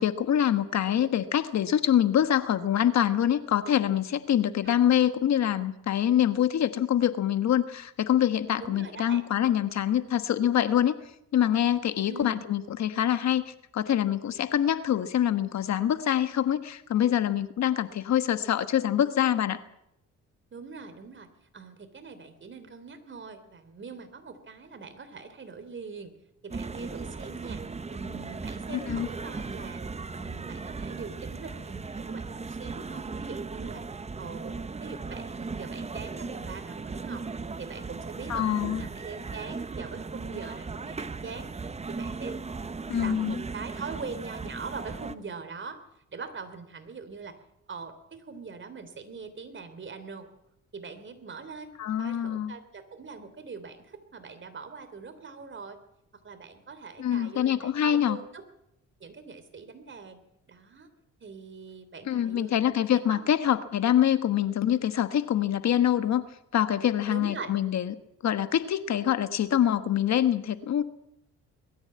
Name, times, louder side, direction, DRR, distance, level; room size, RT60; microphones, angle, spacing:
voice 1, 0.0-11.0 11.3-19.6 28.7-29.1 38.3-38.8 42.9-43.4 51.8-52.6 57.0-58.2 62.1-66.2 66.5-67.9 68.2-70.8, left 10 dB, 65° left, 11 dB, 1.4 m, -25 dB
voice 2, 8.6-9.2 12.1-12.4 20.5-21.3 21.5-26.1 26.4-27.6 27.9-29.8 30.1-33.8 34.2-37.3 37.6-42.4 43.0-45.8 46.1-47.4 47.7-50.3 50.7-55.8 56.2-58.4 59.0-60.2 60.5-60.9 61.2-62.6 63.1-63.2 67.1-67.5, right 4 dB, 40° right, 10 dB, 3.4 m, -42 dB
sound 1, 26.5-45.1, right 4 dB, 20° right, 1.0 m, -37 dB
21.0 x 14.0 x 8.7 m, 0.79 s
cardioid pair, 90°, 30 cm